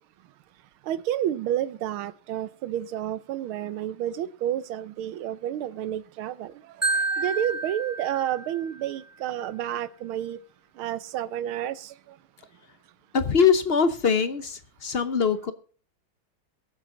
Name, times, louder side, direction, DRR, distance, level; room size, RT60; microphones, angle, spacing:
voice 1, 0.9-10.4 10.8-12.2, right 11 dB, 90° right, 17 dB, 1.6 m, -30 dB
Marimba xylophone, 6.8-8.9, right 3 dB, 5° right, 2.3 m, -29 dB
voice 2, 13.1-15.5, left 6 dB, 50° left, 12 dB, 0.7 m, -22 dB
22.0 x 7.4 x 3.8 m, 0.41 s
omnidirectional pair, 2.2 m